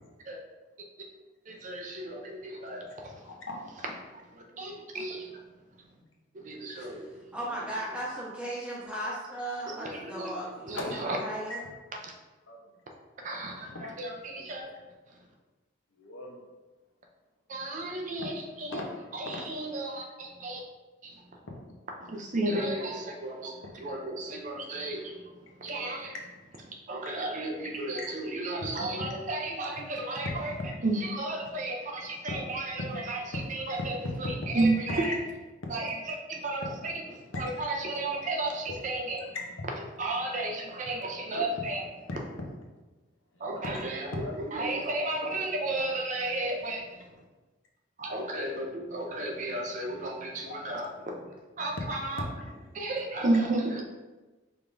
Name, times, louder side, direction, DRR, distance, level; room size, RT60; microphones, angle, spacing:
voice 1, 1.5-3.1 4.3-5.4 6.3-7.1 9.8-10.3 10.7-11.2 13.2-14.7 17.5-18.8 19.1-20.6 21.0-21.1 22.0-25.2 25.6-26.1 26.9-30.5 30.8-35.1 35.7-37.0 37.3-39.3 40.0-41.9 43.4-47.0 48.0-51.1 51.6-52.2 52.7-53.8, right 2 dB, 40° right, 1 dB, 0.5 m, -33 dB
voice 2, 3.2-3.8 4.5-4.9 10.7-11.0 11.5-11.7 12.5-12.6 13.5-13.9 14.4-14.5 16.0-16.5 18.7-18.9 19.2-19.4 23.6-23.7 25.7-26.2 27.8-28.1 28.7-28.8 30.2-30.4 32.3-32.4 32.9-33.5 34.4-34.5 34.9-35.2 36.6-37.4 39.3-39.4 42.1-42.2 43.3-44.4 50.4-50.6 51.8-51.9 52.2-52.3, left 2 dB, 70° left, 0 dB, 0.8 m, -38 dB
voice 3, 7.3-11.6, right 1 dB, 5° right, -6 dB, 1.0 m, -36 dB
4.8 x 3.5 x 2.6 m, 1.2 s
head